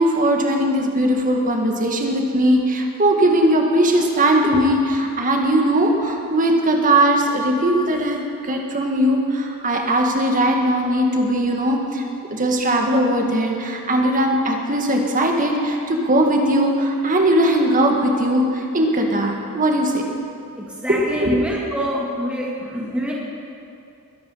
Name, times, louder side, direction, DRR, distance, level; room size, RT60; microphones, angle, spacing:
voice 1, 0.0-12.0 12.3-20.0 20.9-21.4, right 1 dB, 35° right, 1 dB, 1.9 m, -19 dB
voice 2, 20.6-23.1, equal, 5° right, -4 dB, 1.9 m, -25 dB
22.0 x 10.5 x 5.7 m, 2.7 s
head